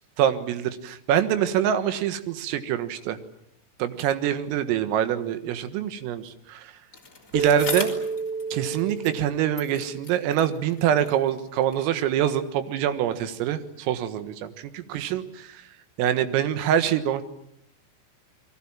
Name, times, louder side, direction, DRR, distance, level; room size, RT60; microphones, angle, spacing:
voice 1, 0.2-3.2 3.8-6.7 7.3-8.0 8.5-15.6 16.0-17.2, right 10 dB, 85° right, 10 dB, 4.2 m, -25 dB
Bicycle, 6.9-9.3 9.5-11.9 12.7-12.8, left 3 dB, 20° left, 3.2 m, -39 dB
Keyboard (musical), 7.3-10.5, right 4 dB, 40° right, 2.7 m, -31 dB
30.0 x 22.0 x 7.3 m, 0.74 s
omnidirectional pair, 5.8 m